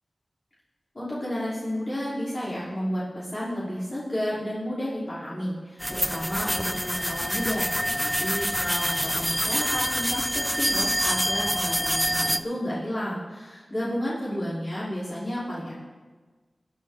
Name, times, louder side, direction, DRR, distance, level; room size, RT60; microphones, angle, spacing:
voice 1, 0.9-15.7, equal, 50° left, -9 dB, 3.4 m, -31 dB
sound 1, 5.8-12.4, equal, ahead, 0.5 m, -26 dB
20.0 x 10.5 x 3.6 m, 1.4 s
wide cardioid pair, 60°, 0 cm